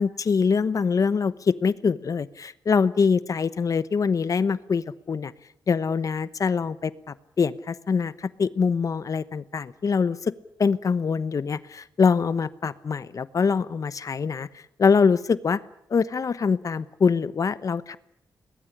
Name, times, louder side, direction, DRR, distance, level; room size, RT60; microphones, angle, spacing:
voice 1, 0.0-5.3 5.7-6.9 7.4-10.3 10.6-15.6 15.9-18.0, left 5 dB, 50° left, 16 dB, 1.0 m, -24 dB
22.0 x 20.5 x 9.9 m, 0.73 s
wide cardioid pair, 125°, 8 cm